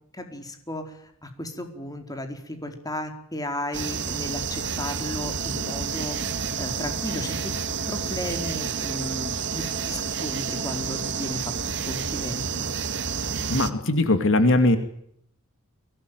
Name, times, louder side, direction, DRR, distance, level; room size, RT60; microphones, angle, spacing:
voice 1, 0.1-1.0 1.2-6.2 6.6-7.5 7.9-12.7, left 1 dB, 15° left, 5 dB, 4.5 m, -34 dB
sound 1, 3.7-13.7, right 6 dB, 55° right, 2.0 m, -30 dB
sound 2, 5.4-11.3, equal, 40° right, 4.5 m, -43 dB
voice 2, 13.5-14.8, left 2 dB, 60° left, 8 dB, 2.5 m, -20 dB
24.0 x 19.0 x 9.3 m, 0.70 s
head